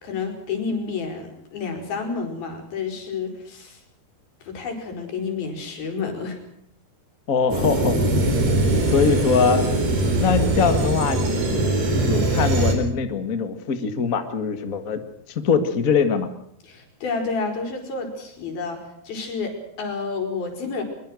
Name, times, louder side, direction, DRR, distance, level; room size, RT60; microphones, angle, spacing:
voice 1, 0.0-3.8 4.4-6.4 16.6-20.8, left 4 dB, 65° left, 4 dB, 6.4 m, -30 dB
voice 2, 7.3-8.0 8.7-9.7 10.2-11.7 12.0-15.0 15.4-16.3, left 6 dB, 45° left, 8 dB, 1.1 m, -22 dB
sound 1, 7.5-12.8, right 2 dB, 55° right, 5.6 m, -21 dB
23.0 x 23.0 x 6.4 m, 0.71 s
omnidirectional pair, 4.6 m